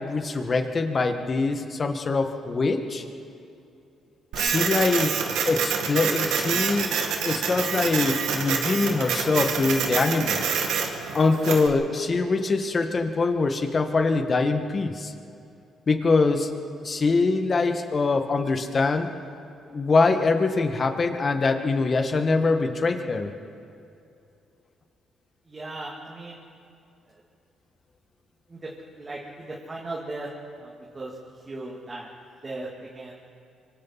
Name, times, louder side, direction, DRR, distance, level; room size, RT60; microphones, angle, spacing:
voice 1, 0.0-3.0 4.3-5.1 5.4-7.0 7.2-10.5 11.1-15.1 15.9-16.5 16.8-19.1 19.7-23.3, left 3 dB, 40° left, 6 dB, 1.8 m, -23 dB
Printer, 4.3-11.7, right 6 dB, 85° right, 2.0 m, -27 dB
voice 2, 25.5-26.4 27.1-27.2 28.5-30.3 30.6-31.1 31.5-32.1 32.4-33.2, right 2 dB, 25° right, -4 dB, 2.8 m, -37 dB
25.5 x 25.0 x 4.3 m, 2.6 s
cardioid pair, 90°, 0 cm